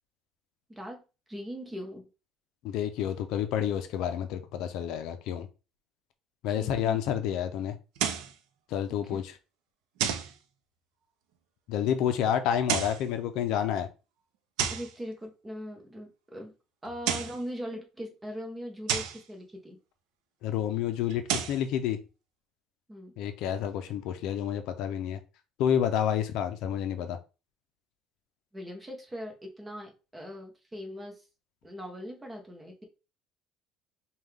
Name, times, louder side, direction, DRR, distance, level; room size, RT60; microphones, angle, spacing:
voice 1, 0.7-1.0 1.3-2.1 6.6-7.0 9.0-9.2 14.7-16.5 16.8-19.8 22.9-23.1 28.5-31.2 31.6-32.8, equal, 10° right, 2 dB, 0.9 m, -40 dB
voice 2, 2.6-5.5 6.4-7.8 8.7-9.3 11.7-13.9 20.4-22.0 23.2-25.2 25.6-27.2, left 9 dB, 65° left, 8 dB, 0.5 m, -29 dB
sound 1, 8.0-8.3 10.0-10.3 12.5-13.0 14.6-14.9 16.9-17.4 18.9-19.2 21.1-21.6, right 8 dB, 85° right, 0.6 m, -30 dB
5.4 x 2.3 x 3.3 m, 0.31 s
cardioid pair, 165°, 0 cm